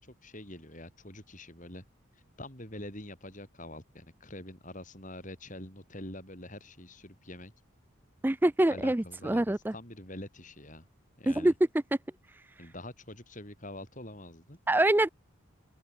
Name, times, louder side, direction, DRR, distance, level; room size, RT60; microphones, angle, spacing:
voice 1, 0.0-1.8 2.1-7.5 8.7-10.9 11.2-11.5 12.6-14.6, left 1 dB, 35° left, 7.4 m, -45 dB
voice 2, 8.2-9.7 11.3-11.5 14.7-15.1, right 1 dB, 10° right, 0.4 m, -25 dB
open air
head